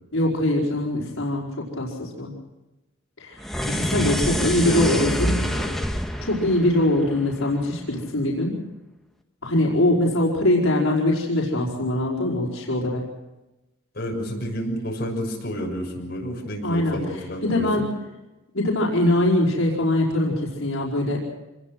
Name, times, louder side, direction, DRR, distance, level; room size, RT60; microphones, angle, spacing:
voice 1, 0.1-2.3 3.2-3.4 3.7-5.4 6.2-8.6 9.4-13.0 16.6-17.0 17.4-17.9 18.5-21.2, left 1 dB, 80° left, -4 dB, 5.0 m, -22 dB
sound 1, 3.4-7.8, equal, ahead, 1.6 m, -27 dB
voice 2, 3.6-3.9 4.2-5.7 13.9-17.8, equal, 50° left, -1 dB, 6.9 m, -31 dB
26.5 x 21.0 x 6.2 m, 1.0 s
head